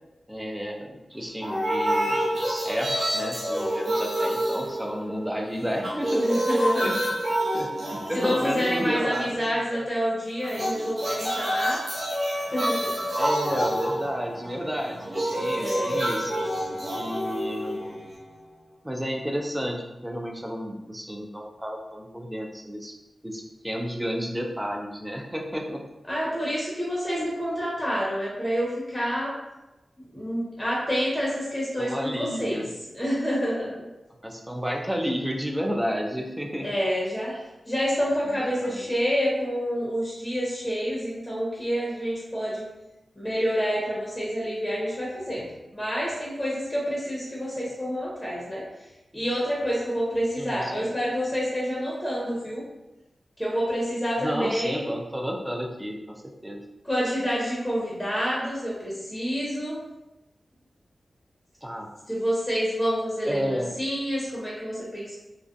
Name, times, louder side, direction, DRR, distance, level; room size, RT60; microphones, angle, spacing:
voice 1, 0.3-7.0 7.3-9.9 13.2-16.3 16.9-17.8 18.8-22.9 23.2-25.8 31.8-32.7 34.2-36.7 38.3-38.9 50.4-50.9 54.2-56.6 61.6-61.9 63.3-63.8, equal, 10° right, 1 dB, 0.4 m, -32 dB
sound 1, 1.4-5.4 5.7-9.5 10.4-18.4, equal, 55° right, 0.7 m, -28 dB
voice 2, 6.2-6.9 8.1-11.9 12.5-12.9 15.5-16.0 26.1-29.4 30.1-32.6 32.9-33.9 36.6-37.3 37.7-42.7 43.2-48.6 49.1-52.6 53.4-54.9 56.8-59.8 62.1-65.2, equal, 10° left, -6 dB, 0.8 m, -28 dB
2.4 x 2.1 x 2.5 m, 0.98 s
cardioid pair, 60°, 0 cm